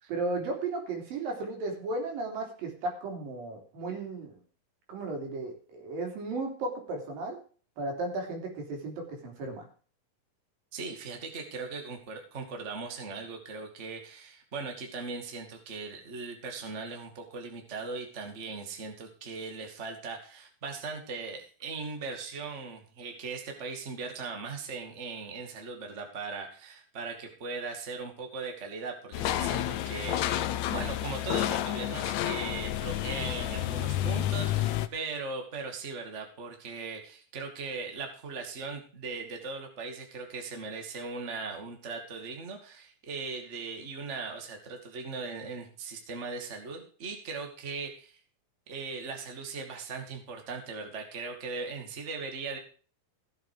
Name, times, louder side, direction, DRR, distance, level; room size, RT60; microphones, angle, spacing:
voice 1, 0.1-4.4 4.9-7.4 7.8-9.6, right 2 dB, 80° right, 2 dB, 4.9 m, -35 dB
voice 2, 10.7-48.2 48.7-52.6, right 4 dB, 25° right, 3 dB, 2.0 m, -39 dB
sound 1, 29.1-34.9, left 13 dB, 75° left, 1.7 m, -30 dB
15.5 x 7.9 x 5.0 m, 0.40 s
omnidirectional pair, 4.0 m